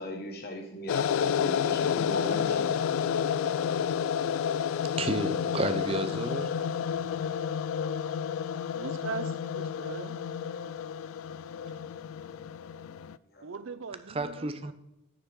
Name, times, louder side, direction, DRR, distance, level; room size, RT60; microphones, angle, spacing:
voice 1, 0.0-3.2 13.3-13.4, left 1 dB, 50° left, 3 dB, 1.6 m, -38 dB
sound 1, 0.9-13.2, left 8 dB, 90° left, 0.3 m, -30 dB
voice 2, 5.0-6.5 14.1-14.7, right 2 dB, 30° right, 10 dB, 0.6 m, -31 dB
voice 3, 8.7-10.2 11.7-11.8 13.4-14.7, right 4 dB, 70° right, 13 dB, 0.6 m, -40 dB
9.6 x 6.9 x 3.8 m, 0.89 s
head